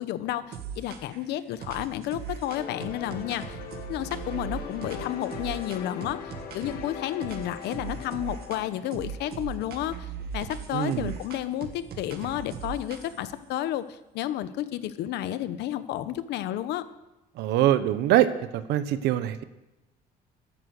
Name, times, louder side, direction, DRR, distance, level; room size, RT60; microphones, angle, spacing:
voice 1, 0.0-3.6 3.9-6.2 6.5-10.1 10.3-16.8, left 12 dB, 80° left, 13 dB, 1.0 m, -31 dB
sound 1, 0.5-1.2 1.6-6.9 7.2-8.6 8.9-13.3, right 7 dB, 70° right, 1.9 m, -39 dB
sound 2, 2.5-9.9, left 6 dB, 65° left, 2.3 m, -41 dB
voice 2, 10.7-11.2 17.4-19.4, right 12 dB, 85° right, 13 dB, 1.0 m, -24 dB
14.0 x 10.5 x 6.6 m, 1.0 s
cardioid pair, 110°, 17 cm